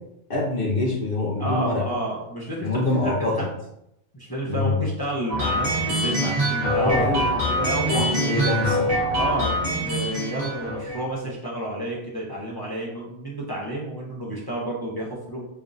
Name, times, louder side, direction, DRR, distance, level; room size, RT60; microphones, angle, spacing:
voice 1, 0.3-1.8 2.6-3.5 4.4-4.8 6.7-7.4 7.9-8.9, left 2 dB, 55° left, -4 dB, 0.8 m, -25 dB
voice 2, 1.4-3.1 4.1-8.4 9.1-15.4, right 1 dB, 25° left, -5 dB, 0.6 m, -30 dB
sound 1, 5.3-11.1, equal, 35° right, 0.9 m, -24 dB
5.0 x 2.6 x 2.5 m, 0.80 s
omnidirectional pair, 1.3 m